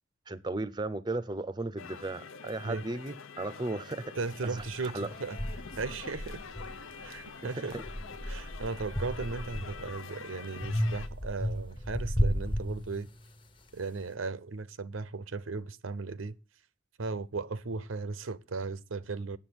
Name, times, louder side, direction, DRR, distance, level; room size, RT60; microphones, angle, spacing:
voice 1, 0.3-4.1 4.4-5.1 7.5-7.8, right 2 dB, 20° right, 0.5 m, -35 dB
sound 1, 1.8-11.1, left 5 dB, 80° left, 0.9 m, -46 dB
voice 2, 4.2-5.4 5.8-6.4 7.0-7.8 8.3-13.1 13.7-16.4 17.0-19.4, right 4 dB, 80° right, 0.7 m, -36 dB
sound 2, 4.6-4.7 5.4-7.2 7.7-10.0 10.6-13.4, equal, 25° left, 0.9 m, -33 dB
8.7 x 7.4 x 7.9 m
head